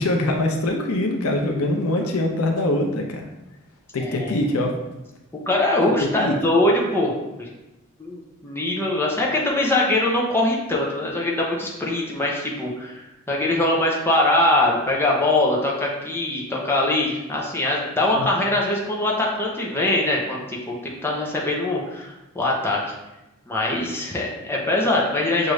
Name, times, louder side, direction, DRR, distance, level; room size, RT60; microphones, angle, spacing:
voice 1, 0.0-3.3 3.9-4.7 6.0-6.3 18.1-18.3, left 1 dB, 90° left, 2 dB, 0.6 m, -23 dB
voice 2, 4.0-4.3 5.5-7.1 7.4-7.5 8.0-22.9 23.5-25.5, left 1 dB, 10° left, -3 dB, 0.7 m, -22 dB
6.4 x 2.5 x 3.2 m, 0.97 s
head